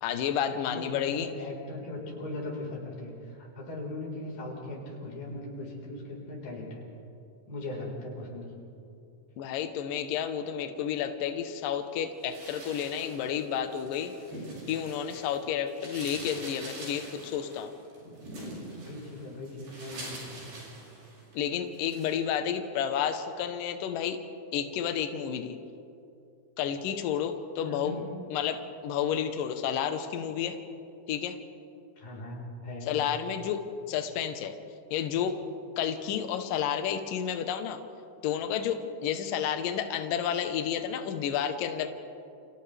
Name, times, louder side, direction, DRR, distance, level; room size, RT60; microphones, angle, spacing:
voice 1, 0.0-1.3 9.4-14.1 14.7-17.7 21.3-24.2 24.5-25.6 26.6-27.9 28.3-30.6 31.1-31.4 32.8-33.6 33.9-34.5 34.9-35.4 35.8-37.8 38.2-41.9, left 9 dB, 90° left, 7 dB, 1.9 m, -31 dB
voice 2, 0.6-6.8 7.5-8.5 18.7-20.6 27.6-28.0 32.0-32.9, left 2 dB, 50° left, -2 dB, 6.1 m, -39 dB
sound 1, 12.2-15.4 15.7-21.3 21.7-22.2, right 1 dB, 55° right, 8.5 m, -44 dB
29.5 x 29.0 x 3.4 m, 2.7 s
omnidirectional pair, 5.5 m